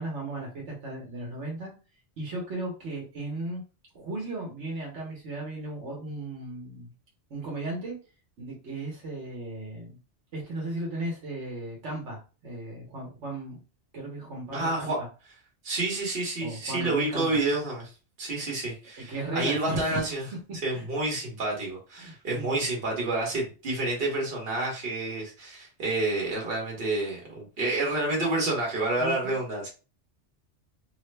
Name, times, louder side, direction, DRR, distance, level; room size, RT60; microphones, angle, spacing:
voice 1, 0.0-1.7 2.2-3.6 3.9-6.9 7.3-8.0 8.4-10.0 10.3-13.6 13.9-15.1 16.4-17.4 19.0-20.0 20.7-20.8 22.0-22.6 29.0-29.4, right 2 dB, 75° right, -2 dB, 1.3 m, -36 dB
voice 2, 14.5-15.0 15.6-17.9 18.2-20.2 20.6-29.7, right 2 dB, 55° right, -2 dB, 1.4 m, -29 dB
3.2 x 2.1 x 3.2 m, 0.33 s
omnidirectional pair, 1.2 m